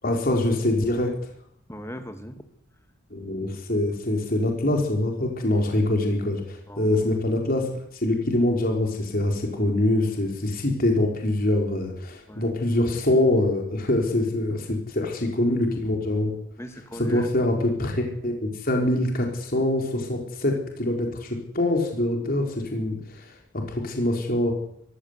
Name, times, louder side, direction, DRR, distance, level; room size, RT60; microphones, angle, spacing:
voice 1, 0.0-1.1 3.1-16.3 16.9-24.5, left 1 dB, 45° left, 1 dB, 4.3 m, -24 dB
voice 2, 1.7-2.5 6.7-7.0 12.3-12.4 16.6-17.3, equal, 15° left, 7 dB, 2.2 m, -38 dB
23.0 x 15.5 x 8.2 m, 0.71 s
head